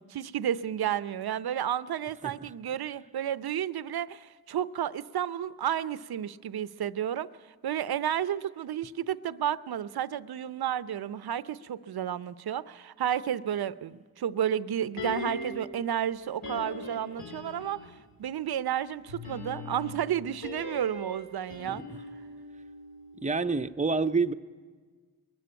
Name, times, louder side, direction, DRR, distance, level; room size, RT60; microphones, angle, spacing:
voice 1, 0.0-7.3 7.6-21.8, right 10 dB, 80° right, 16 dB, 0.6 m, -32 dB
sound 1, 15.0-15.8 16.4-18.1 19.1-23.3 23.6-23.7, left 2 dB, 70° left, 3.5 m, -40 dB
voice 2, 21.7-22.0 23.2-24.3, right 4 dB, 20° right, 9 dB, 0.6 m, -28 dB
21.5 x 12.0 x 10.0 m, 1.5 s
wide cardioid pair, 75°, 37 cm